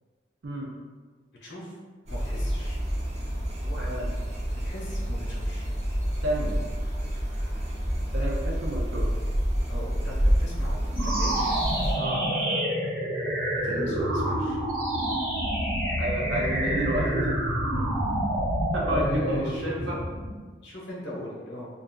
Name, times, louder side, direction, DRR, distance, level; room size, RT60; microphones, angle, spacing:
voice 1, 0.4-0.7 3.8-4.1 6.2-6.6 8.1-9.1 11.9-12.2 16.0-17.1 17.5-17.9 18.7-20.0, right 1 dB, 85° right, -2 dB, 0.5 m, -31 dB
voice 2, 1.4-1.7 2.1-2.8 3.2-3.3 3.6-3.9 4.6-5.7 7.5-7.7 9.7-11.6 12.3-12.6 13.6-14.6 18.8-19.8 20.6-21.7, left 1 dB, 75° left, -5 dB, 0.8 m, -38 dB
sound 1, 2.1-11.9, equal, 35° right, 0.6 m, -28 dB
sound 2, 10.9-20.4, right 1 dB, 65° right, 1.0 m, -28 dB
3.7 x 2.3 x 2.3 m, 1.5 s
head